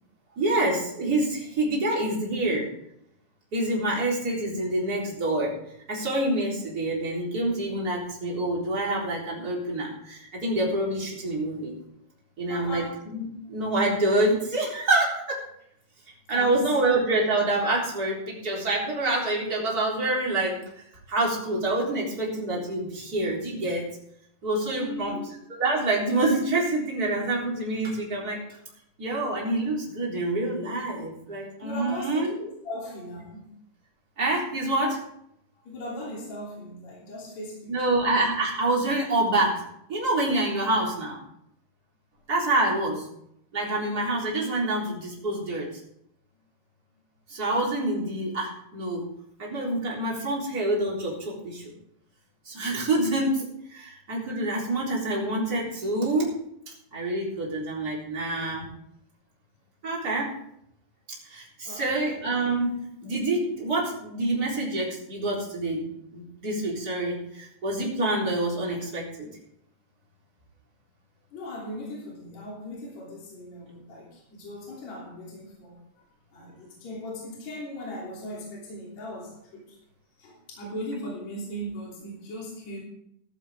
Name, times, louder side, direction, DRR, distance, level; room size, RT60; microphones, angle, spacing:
voice 1, 0.4-2.7 3.5-5.6 5.9-11.7 12.4-15.4 16.3-20.6 21.1-23.9 24.4-25.1 25.6-28.4 29.0-32.3 34.2-35.0 37.7-41.2 42.3-43.1 43.5-45.7 47.3-49.1 49.4-51.6 52.5-53.4 53.7-56.4 56.9-58.7 59.8-60.3 61.3-62.8 63.0-69.3, right 2 dB, 30° right, -4 dB, 4.2 m, -27 dB
voice 2, 12.5-13.0 16.3-16.7 24.7-25.2 31.6-33.5 35.6-38.0 61.6-61.9 62.7-62.8 71.3-75.8 76.3-79.8 80.2-82.8, left 1 dB, 60° left, -4 dB, 4.5 m, -38 dB
16.0 x 11.5 x 3.7 m, 0.74 s
omnidirectional pair, 3.6 m